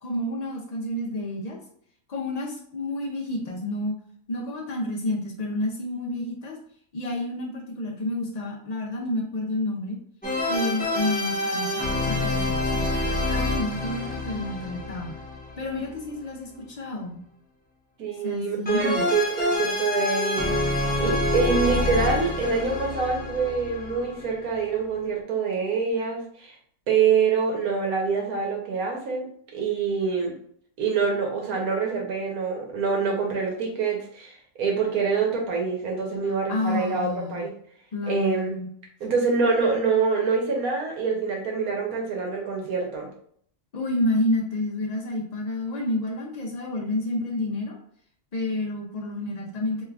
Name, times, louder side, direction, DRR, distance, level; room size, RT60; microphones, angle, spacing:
voice 1, 0.0-1.6 2.1-4.0 4.3-6.6 6.9-10.0 10.5-12.9 13.3-15.1 15.6-17.3 18.2-19.1 36.2-37.5 37.9-38.7 43.7-47.8 48.3-49.8, left 1 dB, 80° left, -2 dB, 0.3 m, -29 dB
sound 1, 10.2-16.2 18.7-24.4, left 2 dB, 10° left, 0.5 m, -27 dB
voice 2, 18.0-20.6 21.0-26.5 26.9-29.3 29.5-30.3 30.8-37.5 38.1-38.5 39.0-43.1, right 5 dB, 80° right, 0 dB, 1.3 m, -25 dB
3.3 x 3.0 x 2.4 m, 0.63 s
omnidirectional pair, 1.5 m